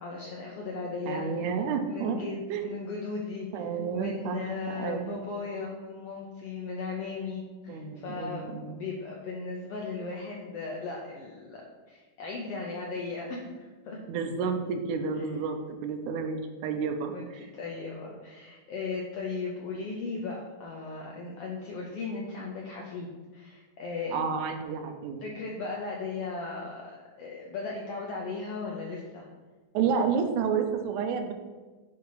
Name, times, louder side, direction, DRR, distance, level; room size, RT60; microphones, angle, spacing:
voice 1, 0.0-1.3 1.9-14.0 17.1-24.3 25.2-29.3, left 4 dB, 80° left, -2 dB, 1.4 m, -37 dB
voice 2, 1.1-2.2 2.5-2.7 3.5-4.4 4.7-5.2 7.7-8.8 14.1-17.4 24.1-25.2 29.7-31.3, right 6 dB, 80° right, 6 dB, 2.0 m, -30 dB
7.5 x 2.9 x 5.6 m, 1.3 s
omnidirectional pair, 3.6 m